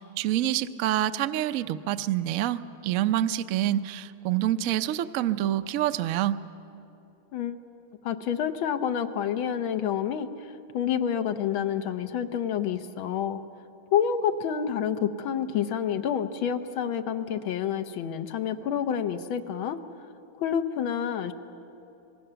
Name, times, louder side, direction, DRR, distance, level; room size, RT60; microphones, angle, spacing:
voice 1, 0.0-6.4, right 12 dB, 80° right, 11 dB, 0.7 m, -27 dB
voice 2, 8.0-10.3 10.7-13.4 13.9-19.8 20.4-21.3, left 8 dB, 80° left, 8 dB, 1.8 m, -28 dB
26.5 x 20.0 x 6.9 m, 2.7 s
omnidirectional pair, 2.2 m